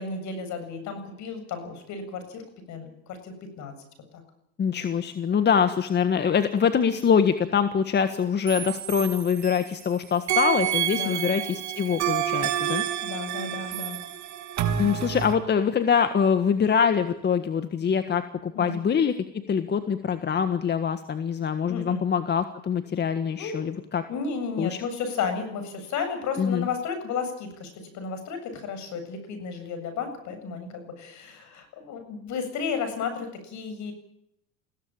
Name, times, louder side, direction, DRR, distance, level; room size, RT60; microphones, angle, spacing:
voice 1, 0.0-2.4 2.7-3.7 4.1-4.2 10.9-11.2 13.0-14.0 18.5-18.8 21.7-22.0 23.4-23.7 24.1-33.9, left 5 dB, 55° left, 9 dB, 7.5 m, -33 dB
voice 2, 4.6-12.8 14.8-24.0 24.6-24.8 26.4-26.7, left 7 dB, 30° left, 9 dB, 1.6 m, -24 dB
sound 1, 8.5-9.9 10.3-15.3, right 11 dB, 50° right, 3.2 m, -29 dB
22.0 x 16.5 x 9.1 m, 0.78 s
supercardioid pair, 115°, 35 cm